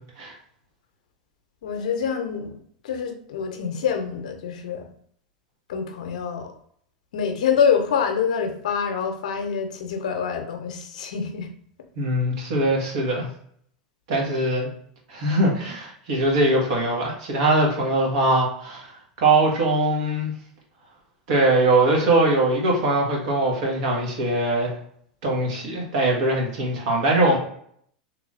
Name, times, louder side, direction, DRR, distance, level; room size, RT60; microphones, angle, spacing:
voice 1, 1.6-2.6 2.8-4.9 5.7-6.5 7.1-11.5, left 7 dB, 75° left, 5 dB, 0.7 m, -26 dB
voice 2, 12.0-13.3 14.1-14.7 15.1-18.9 19.2-20.3 21.3-24.7 25.2-27.4, right 2 dB, 65° right, -1 dB, 1.5 m, -21 dB
3.5 x 3.1 x 2.5 m, 0.64 s
hypercardioid pair, 95°, 4 cm